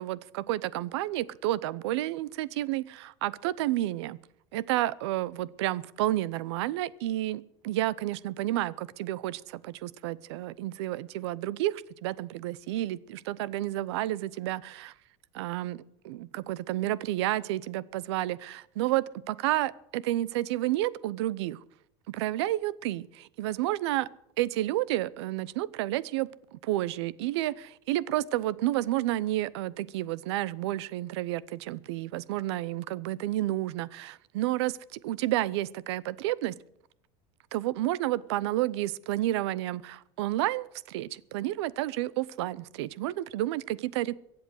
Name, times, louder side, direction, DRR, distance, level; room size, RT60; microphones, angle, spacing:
voice 1, 0.0-4.2 4.5-14.9 15.3-21.6 22.1-24.1 24.4-36.6 37.5-44.1, right 15 dB, 85° right, 0.7 m, -31 dB
23.0 x 7.9 x 6.3 m
supercardioid pair, 160°, 14 cm